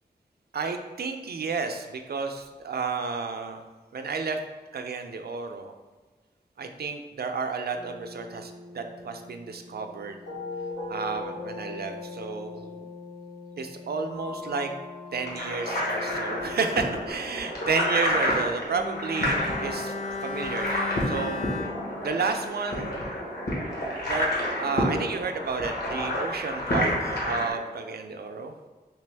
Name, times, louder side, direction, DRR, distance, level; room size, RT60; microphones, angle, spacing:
voice 1, 0.5-3.6 3.9-4.4 4.7-5.7 6.6-10.2 10.9-12.9 13.6-14.7 15.1-19.9 20.2-21.4 22.0-22.9 24.1-28.5, right 4 dB, 65° right, 6 dB, 0.4 m, -31 dB
sound 1, 7.7-17.1, left 3 dB, 85° left, 1.4 m, -40 dB
sound 2, 15.2-27.5, left 1 dB, 65° left, 1.1 m, -29 dB
Bowed string instrument, 18.7-23.1 23.4-23.5, left 4 dB, 40° left, 0.5 m, -36 dB
3.3 x 3.0 x 3.3 m, 1.3 s
wide cardioid pair, 65°, 18 cm